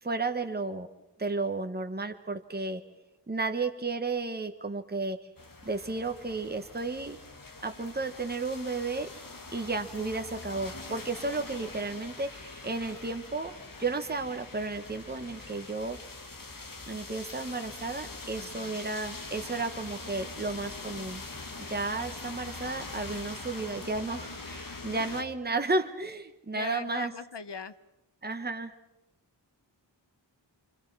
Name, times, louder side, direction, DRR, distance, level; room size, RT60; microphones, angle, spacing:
voice 1, 0.0-0.9 1.2-2.8 3.3-5.3 5.6-7.2 7.6-9.1 9.5-16.0 16.9-21.2 21.7-27.1 28.2-28.7, right 3 dB, 20° right, 6 dB, 1.4 m, -33 dB
sound 1, 5.4-25.2, left 3 dB, 50° left, 2.1 m, -43 dB
voice 2, 18.4-18.8 26.5-27.8, left 6 dB, 70° left, 12 dB, 1.2 m, -40 dB
27.5 x 26.0 x 6.1 m, 0.91 s
wide cardioid pair, 90°, 43 cm